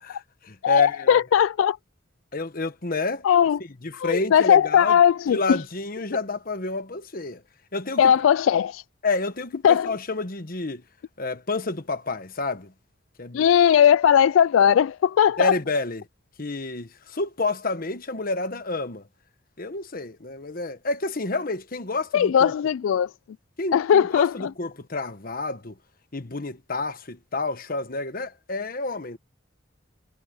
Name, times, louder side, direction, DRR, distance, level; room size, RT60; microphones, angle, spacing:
voice 1, 0.0-1.2 2.3-3.2 3.8-4.9 5.3-7.4 7.7-8.1 9.0-10.8 11.2-12.7 13.2-13.4 15.4-16.1 16.4-19.1 19.6-22.5 23.6-25.8 26.1-29.2, left 2 dB, 45° left, 1.3 m, -29 dB
voice 2, 0.6-1.8 3.2-3.6 4.0-5.6 8.0-8.8 9.6-9.9 13.3-15.6 22.1-23.1 23.7-24.5, left 8 dB, 85° left, 0.3 m, -18 dB
head